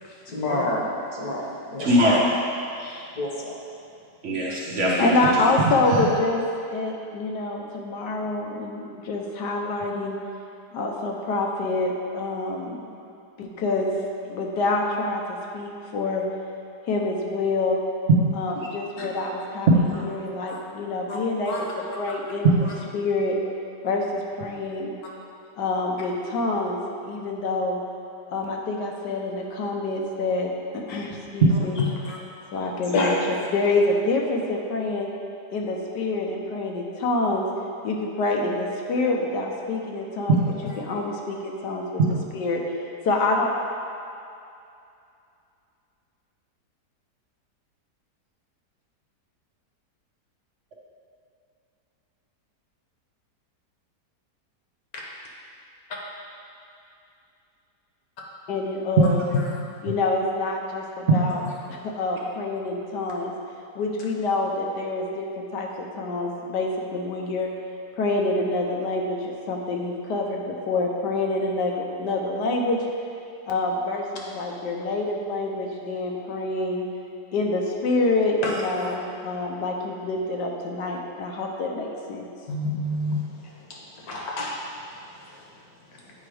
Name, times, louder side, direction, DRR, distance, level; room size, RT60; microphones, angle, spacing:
voice 1, 0.3-0.9 1.2-1.4 1.7-1.9 3.2-3.5 19.0-19.1 20.5-20.6 21.1-21.2 21.5-21.7 32.1-32.2 32.9-33.1 78.4-78.9 82.5-83.1 83.7-83.8 84.1-84.6, left 2 dB, 65° left, -2 dB, 1.4 m, -28 dB
voice 2, 1.8-2.4 2.8-3.0 4.2-5.1 5.5-5.6 19.7-20.0 22.4-22.7 31.5-31.6 42.0-42.1 61.1-61.2, right 1 dB, 55° right, -4 dB, 1.0 m, -20 dB
voice 3, 5.0-6.4 6.7-10.2 10.7-12.9 13.4-13.9 14.2-16.2 16.9-17.8 18.3-19.7 19.9-22.5 22.9-23.4 23.8-24.9 25.6-27.8 28.3-31.8 32.5-33.1 33.5-35.1 35.5-37.5 37.8-40.4 40.8-42.0 42.3-43.5 58.5-59.3 59.8-61.4 61.7-63.3 63.7-67.5 68.0-72.9 73.5-76.9 77.3-82.2, left 2 dB, 85° left, 0 dB, 1.4 m, -26 dB
8.7 x 4.7 x 3.3 m, 2.6 s
omnidirectional pair, 1.8 m